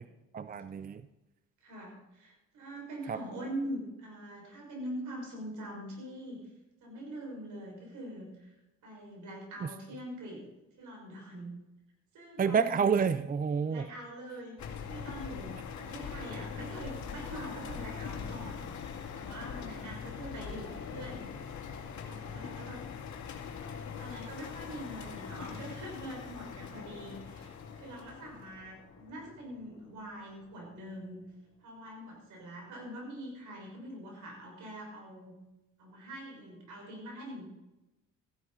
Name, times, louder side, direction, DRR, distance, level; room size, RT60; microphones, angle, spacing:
voice 1, 0.3-1.0 3.1-3.2 12.4-13.9, right 6 dB, 30° right, 14 dB, 0.5 m, -28 dB
voice 2, 1.6-6.4 6.8-8.5 8.8-10.4 10.8-11.5 12.1-12.8 13.6-18.7 19.1-21.3 22.0-22.8 24.0-31.2 31.6-35.3 35.8-37.5, right 1 dB, 80° right, -1 dB, 6.0 m, -43 dB
Ambience Machine Factory A, 14.6-30.0, left 6 dB, 70° left, 2.3 m, -42 dB
15.0 x 11.0 x 4.2 m, 0.98 s
cardioid pair, 90°, 30 cm